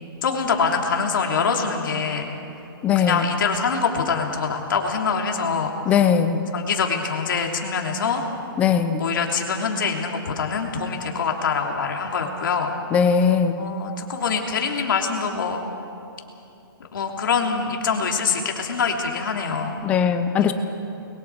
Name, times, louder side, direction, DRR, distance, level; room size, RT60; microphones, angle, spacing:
voice 1, 0.2-2.3 2.9-5.7 6.5-8.2 9.0-12.8 13.6-15.6 16.9-19.8 20.4-20.5, left 5 dB, 60° left, 1 dB, 3.1 m, -24 dB
voice 2, 2.8-3.2 5.9-6.5 8.6-9.0 12.9-13.7 19.8-20.5, left 7 dB, 10° left, 9 dB, 0.6 m, -19 dB
29.0 x 22.0 x 4.7 m, 2.8 s
hypercardioid pair, 170°, 12 cm